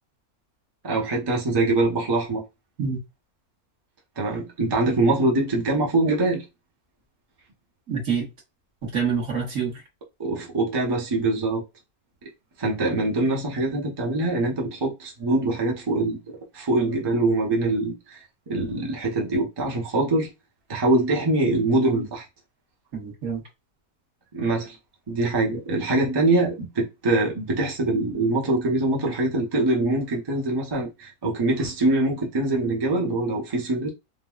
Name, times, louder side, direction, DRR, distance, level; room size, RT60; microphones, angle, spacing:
voice 1, 0.8-2.4 4.2-6.4 10.2-11.6 12.6-16.2 16.5-18.2 18.5-20.3 20.7-22.2 24.3-24.8 25.1-33.9, right 2 dB, 25° right, 0.6 m, -23 dB
voice 2, 7.9-8.3 8.8-9.8 22.9-23.4, right 6 dB, 60° right, 1.6 m, -27 dB
3.6 x 2.2 x 2.3 m
omnidirectional pair, 1.6 m